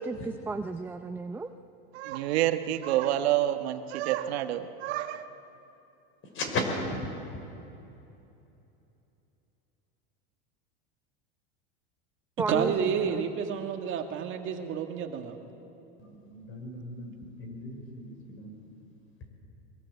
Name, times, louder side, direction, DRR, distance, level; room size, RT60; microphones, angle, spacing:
voice 1, 0.0-1.5 12.4-13.2, right 3 dB, 5° right, 7 dB, 0.6 m, -33 dB
voice 2, 1.9-5.3, right 13 dB, 75° right, 8 dB, 1.3 m, -28 dB
voice 3, 6.3-7.0 16.0-17.1 17.4-18.5, left 2 dB, 40° left, 4 dB, 5.7 m, -35 dB
voice 4, 12.5-15.4, right 7 dB, 40° right, 4 dB, 2.0 m, -30 dB
23.5 x 21.5 x 8.2 m, 2.8 s
supercardioid pair, 130°, 32 cm